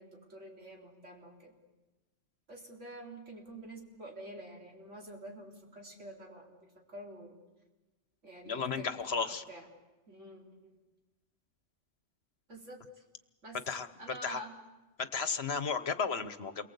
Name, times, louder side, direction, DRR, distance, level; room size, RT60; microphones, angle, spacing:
voice 1, 0.0-1.5 2.5-7.4 8.2-9.6 10.1-10.8 12.5-13.0 13.4-13.6 14.0-14.6, right 1 dB, 75° right, 0 dB, 4.3 m, -48 dB
voice 2, 8.4-9.4 13.5-14.4 15.0-16.7, left 5 dB, 60° left, 12 dB, 1.3 m, -34 dB
28.5 x 23.0 x 8.3 m, 1.1 s
omnidirectional pair, 1.2 m